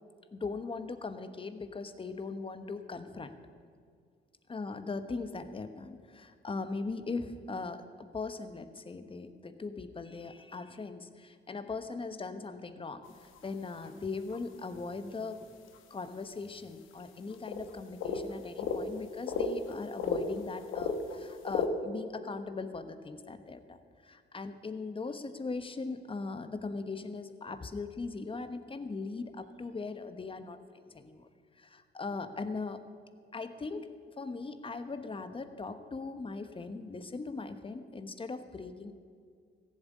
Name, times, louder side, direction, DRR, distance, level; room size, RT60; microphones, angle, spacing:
voice 1, 0.3-3.3 4.5-15.5 15.9-23.8 24.0-31.3 31.6-32.8 33.3-33.9 34.2-38.9, left 3 dB, 25° left, 10 dB, 1.1 m, -39 dB
sound 1, 13.0-13.1 13.4-13.5 13.8-13.9 14.3-14.4 15.7-15.8 16.1-16.2 17.0-17.1 17.3-17.7 18.0-18.8 19.3-20.3 20.6-21.7, left 6 dB, 85° left, 1.4 m, -33 dB
15.0 x 7.5 x 9.5 m, 2.1 s
cardioid pair, 90°, 20 cm